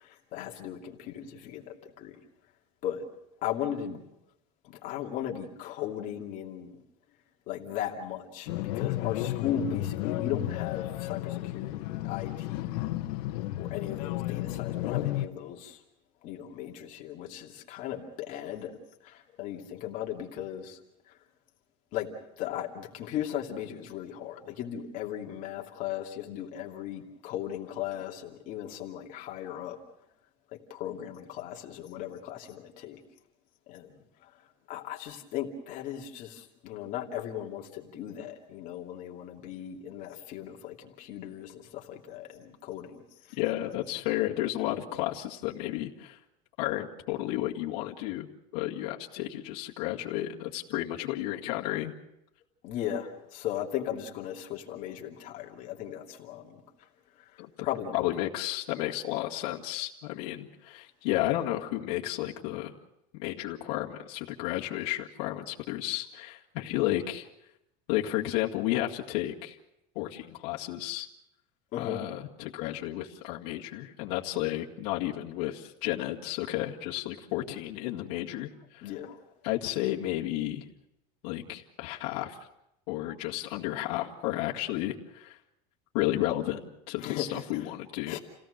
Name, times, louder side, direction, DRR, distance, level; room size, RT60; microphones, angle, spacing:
voice 1, 0.0-2.2 2.8-3.1 3.4-4.0 4.6-6.8 7.5-12.9 13.6-15.8 16.2-18.8 19.0-21.2 21.9-22.1 22.4-29.8 30.5-33.0 33.7-34.4 34.7-43.9 52.6-56.9 57.2-58.1 63.8-63.9 71.7-72.0 77.4-77.5 78.8-79.2 87.0-87.7 88.0-88.2, left 10 dB, 45° left, 1 dB, 2.6 m, -37 dB
sound 1, 8.5-15.3, left 15 dB, 85° left, 1.3 m, -33 dB
voice 2, 43.3-46.2 46.6-48.3 48.5-51.9 57.4-57.5 57.9-62.7 63.2-67.3 67.9-69.6 70.0-71.1 71.8-78.8 79.4-80.6 81.2-82.4 82.9-85.4 85.9-88.2, left 15 dB, 65° left, -4 dB, 2.1 m, -32 dB
29.0 x 17.5 x 6.6 m, 0.84 s
cardioid pair, 175°, 20 cm